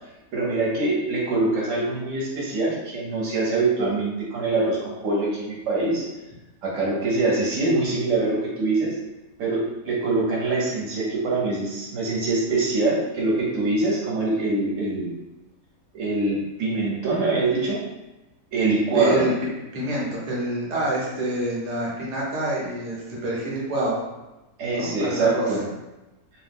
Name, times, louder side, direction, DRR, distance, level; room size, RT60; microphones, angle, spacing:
voice 1, 0.3-6.0 6.6-8.9 9.4-15.2 15.9-17.8 18.5-19.3 24.6-25.6, right 3 dB, 65° right, -4 dB, 1.0 m, -24 dB
voice 2, 18.9-19.3 19.7-24.0 24.7-25.5, right 1 dB, 45° right, -5 dB, 0.5 m, -27 dB
2.6 x 2.1 x 3.3 m, 1.0 s
omnidirectional pair, 1.6 m